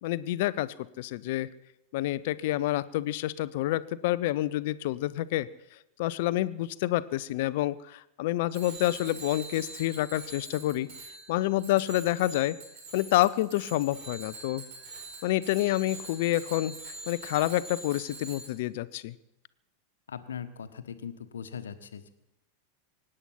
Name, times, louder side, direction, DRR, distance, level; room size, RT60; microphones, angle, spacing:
voice 1, 0.0-1.5 1.9-5.5 6.0-10.9 11.3-12.6 12.9-14.6 15.2-16.8 17.1-19.2, left 15 dB, 50° left, 17 dB, 0.6 m, -28 dB
Bicycle bell, 8.5-18.5, right 2 dB, 50° right, 5.0 m, -44 dB
voice 2, 20.1-22.1, left 7 dB, 65° left, 10 dB, 1.2 m, -40 dB
24.0 x 10.0 x 5.8 m, 0.89 s
figure-of-eight pair, 90°, 0 cm